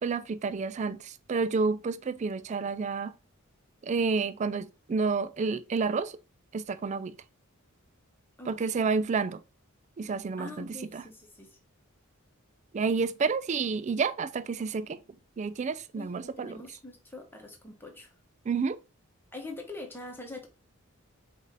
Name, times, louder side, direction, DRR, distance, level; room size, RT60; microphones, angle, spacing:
voice 1, 0.0-3.1 3.8-6.1 6.5-7.2 8.5-9.4 10.0-11.0 12.7-15.0 15.4-16.6 18.5-18.8, right 4 dB, 35° right, 0.3 m, -30 dB
voice 2, 8.4-8.8 10.4-11.5 16.0-18.1 19.3-20.5, left 2 dB, 10° left, 1.0 m, -44 dB
4.9 x 2.7 x 3.9 m
head